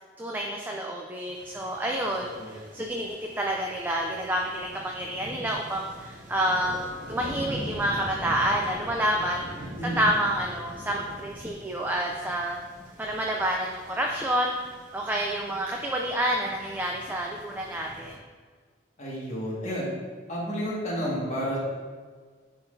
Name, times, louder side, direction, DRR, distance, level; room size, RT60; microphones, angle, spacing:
voice 1, 0.2-9.7 10.0-12.6 13.0-14.5 14.9-18.1, right 1 dB, 10° right, 0 dB, 0.4 m, -29 dB
sound 1, 1.3-18.2, equal, 45° right, 0.7 m, -43 dB
voice 2, 2.2-2.5 9.5-10.0 19.0-19.9 20.3-21.6, equal, 40° left, -6 dB, 1.8 m, -31 dB
9.8 x 3.9 x 2.7 m, 1.5 s
head